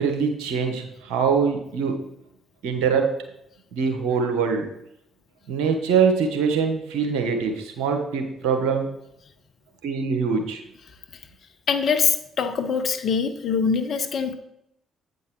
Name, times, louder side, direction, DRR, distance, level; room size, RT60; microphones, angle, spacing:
voice 1, 0.0-2.0 2.6-3.1 3.7-4.6 5.5-8.9 9.8-10.6, right 6 dB, 75° right, 4 dB, 1.2 m, -23 dB
voice 2, 11.7-14.4, left 6 dB, 55° left, 8 dB, 0.9 m, -23 dB
8.5 x 5.4 x 4.6 m, 0.78 s
hypercardioid pair, 45°, 0 cm